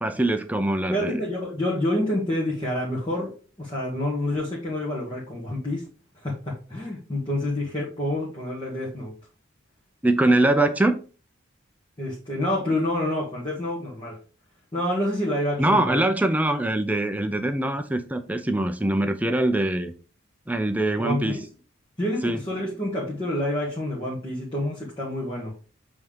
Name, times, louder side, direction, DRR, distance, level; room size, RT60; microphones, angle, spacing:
voice 1, 0.0-1.2 10.0-11.0 15.6-19.9 20.5-21.3 22.2-22.4, right 1 dB, 5° right, 0.5 m, -23 dB
voice 2, 0.9-5.9 6.1-9.1 10.2-10.4 12.0-14.2 14.7-16.0 21.0-21.4 22.0-25.6, left 1 dB, 25° left, 1.8 m, -28 dB
8.0 x 3.5 x 3.7 m
head